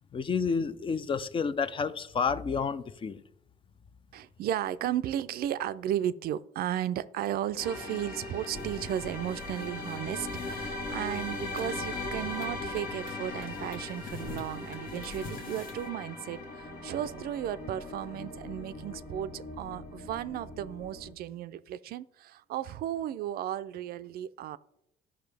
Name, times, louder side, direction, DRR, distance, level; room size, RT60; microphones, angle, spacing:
voice 1, 0.1-3.2, left 5 dB, 30° left, 0.5 m, -30 dB
voice 2, 4.1-24.6, right 11 dB, 65° right, 0.4 m, -34 dB
sound 1, 7.6-21.1, left 2 dB, 80° left, 1.7 m, -39 dB
sound 2, 8.5-15.9, left 3 dB, 60° left, 1.2 m, -45 dB
12.5 x 5.5 x 3.4 m
cardioid pair, 110°, 17 cm